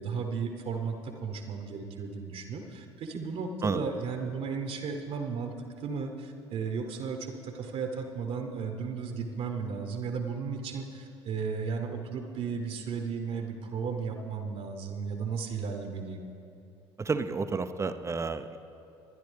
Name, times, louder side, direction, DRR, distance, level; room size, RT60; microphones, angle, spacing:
voice 1, 0.0-16.2, right 5 dB, 45° right, 5 dB, 1.1 m, -35 dB
voice 2, 17.0-18.6, right 4 dB, 20° right, 10 dB, 0.6 m, -30 dB
23.5 x 10.5 x 3.4 m, 2.7 s
figure-of-eight pair, 60°, 14 cm